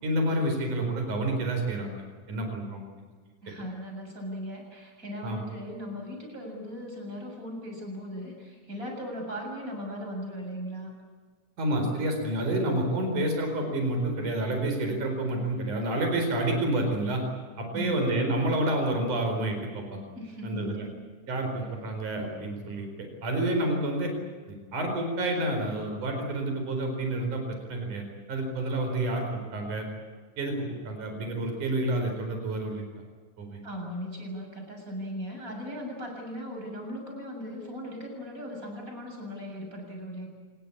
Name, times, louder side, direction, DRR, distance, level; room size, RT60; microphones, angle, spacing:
voice 1, 0.0-1.9 2.3-2.8 5.2-5.4 11.6-17.2 17.6-20.0 20.4-20.9 21.3-22.9 23.2-24.1 24.5-29.3 29.5-29.9 30.4-32.8 33.4-33.6, right 1 dB, 80° right, 4 dB, 6.0 m, -29 dB
voice 2, 3.4-10.9 17.7-18.0 20.2-21.0 33.6-40.3, equal, 25° right, 1 dB, 7.7 m, -38 dB
26.0 x 22.0 x 8.6 m, 1.5 s
omnidirectional pair, 3.5 m